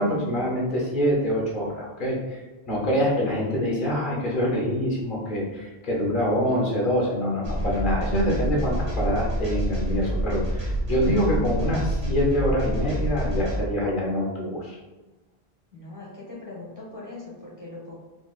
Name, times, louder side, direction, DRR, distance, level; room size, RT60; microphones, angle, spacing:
voice 1, 0.0-14.8, equal, 55° left, -3 dB, 0.8 m, -25 dB
sound 1, 7.4-13.6, right 1 dB, 55° right, 1.2 m, -27 dB
voice 2, 15.7-18.0, left 2 dB, 20° right, -5 dB, 0.7 m, -40 dB
4.0 x 2.2 x 2.3 m, 1.2 s
omnidirectional pair, 1.0 m